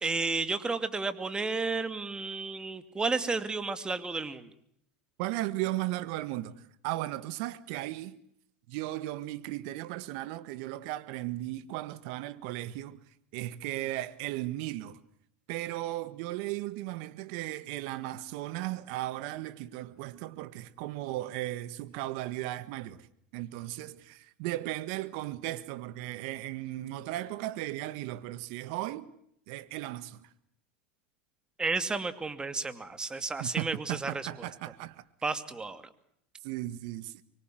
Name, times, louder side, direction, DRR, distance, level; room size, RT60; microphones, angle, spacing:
voice 1, 0.0-4.5 31.6-34.3 35.2-35.8, right 3 dB, 15° right, 2.6 m, -32 dB
voice 2, 5.2-8.2 8.7-13.0 13.3-15.0 15.5-23.1 23.3-29.1 29.5-30.3 33.4-35.0 36.4-37.2, right 16 dB, 60° right, 1.8 m, -36 dB
25.0 x 24.0 x 7.8 m
hypercardioid pair, 110°, 6 cm